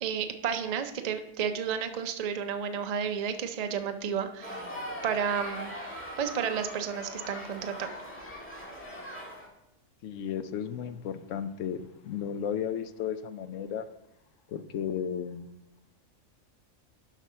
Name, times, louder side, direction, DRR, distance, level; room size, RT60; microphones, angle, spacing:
voice 1, 0.0-5.7 6.2-7.9, right 7 dB, 50° right, 8 dB, 0.5 m, -32 dB
sound 1, 4.4-9.5, equal, 10° left, 1.7 m, -40 dB
voice 2, 10.0-13.9 14.5-15.5, left 8 dB, 70° left, 12 dB, 0.9 m, -34 dB
7.2 x 5.8 x 5.6 m, 0.88 s
omnidirectional pair, 1.4 m